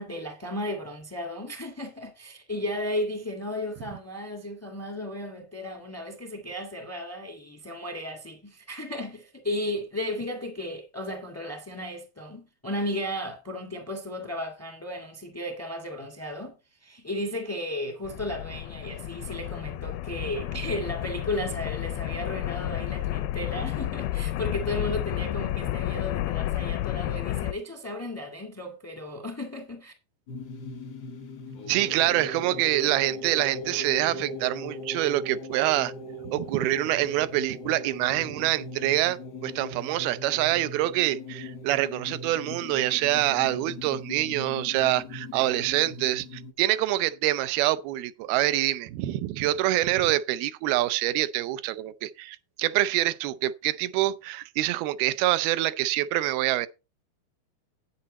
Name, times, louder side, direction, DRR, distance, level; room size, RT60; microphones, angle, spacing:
voice 1, 0.0-16.5 16.8-29.9, left 1 dB, 15° left, 0.5 m, -34 dB
sound 1, 18.0-27.5, left 14 dB, 85° left, 2.5 m, -31 dB
sound 2, 30.3-46.5, left 1 dB, 70° left, 0.9 m, -39 dB
voice 2, 31.7-35.9 36.2-56.7, right 15 dB, 85° right, 2.5 m, -26 dB
9.9 x 8.8 x 4.0 m
omnidirectional pair, 4.2 m